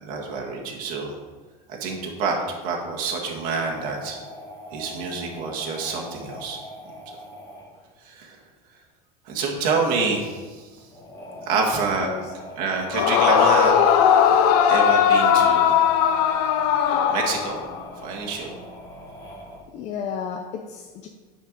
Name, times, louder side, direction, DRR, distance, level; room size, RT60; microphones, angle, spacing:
voice 1, 0.0-1.2 1.8-4.2 4.7-6.6 8.0-8.4 9.2-10.7 11.5-12.1 12.6-13.9 14.6-15.8 17.1-17.6 18.0-18.6, right 4 dB, 45° right, -1 dB, 1.7 m, -27 dB
sound 1, 3.5-7.9 10.8-19.6, equal, 15° left, 1.5 m, -41 dB
voice 2, 12.0-12.3 19.7-21.1, left 7 dB, 35° left, 3 dB, 0.5 m, -32 dB
Yell / Screaming, 12.9-17.8, left 8 dB, 70° left, 0.7 m, -18 dB
9.2 x 4.5 x 5.2 m, 1.4 s
cardioid pair, 165°, 20 cm